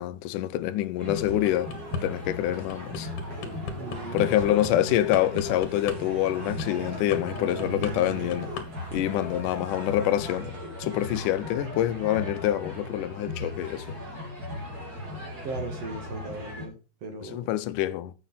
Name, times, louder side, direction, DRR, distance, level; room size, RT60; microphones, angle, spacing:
voice 1, 0.0-1.7 2.0-3.1 4.1-8.5 8.9-10.5 10.8-13.9 17.3-18.1, left 13 dB, 75° left, 2.0 m, -26 dB
sound 1, 1.0-16.7, left 1 dB, 25° right, 4.1 m, -37 dB
sound 2, 1.2-2.0 2.5-8.7 8.9-9.2, left 4 dB, 50° left, 2.1 m, -37 dB
voice 2, 3.7-4.8 15.4-17.5, right 3 dB, 50° right, 2.4 m, -38 dB
Bowed string instrument, 5.0-8.9, right 13 dB, 90° right, 3.0 m, -43 dB
9.5 x 6.8 x 5.8 m
omnidirectional pair, 4.1 m